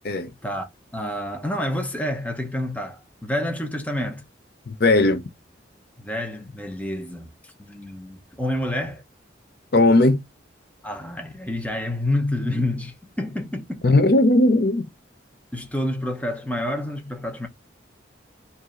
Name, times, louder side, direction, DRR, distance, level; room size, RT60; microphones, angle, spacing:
voice 1, 0.4-4.2 6.0-9.0 10.8-13.8 15.5-17.5, left 1 dB, 10° left, 0.8 m, -28 dB
voice 2, 4.7-5.2 9.7-10.2 13.8-14.9, left 2 dB, 55° left, 0.6 m, -17 dB
4.6 x 2.6 x 3.0 m
head